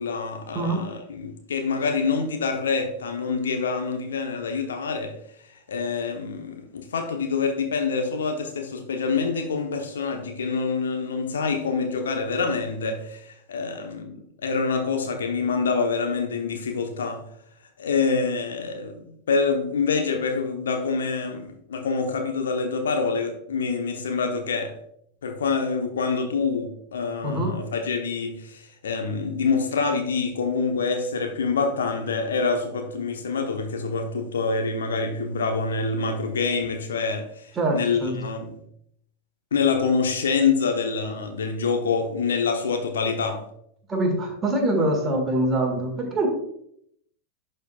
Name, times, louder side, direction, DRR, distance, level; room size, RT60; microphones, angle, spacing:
voice 1, 0.0-5.1 5.7-17.2 17.8-24.7 25.2-38.5 39.5-43.4, left 4 dB, 65° left, 4 dB, 0.9 m, -26 dB
voice 2, 0.5-0.9 27.2-27.5 37.5-38.2 43.9-46.3, right 1 dB, 20° right, 1 dB, 1.7 m, -24 dB
11.5 x 4.4 x 2.3 m, 0.71 s
figure-of-eight pair, 90°, 0 cm